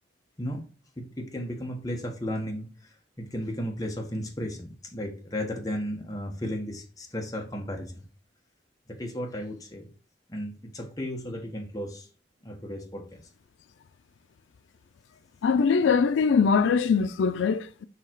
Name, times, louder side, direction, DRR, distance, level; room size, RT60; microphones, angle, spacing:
voice 1, 1.0-2.7 3.2-8.0 9.0-9.9 10.3-12.1 12.4-13.0, equal, 20° left, 1.2 m, -34 dB
voice 2, 15.4-17.8, left 5 dB, 85° left, 0.4 m, -22 dB
6.8 x 3.2 x 4.5 m
head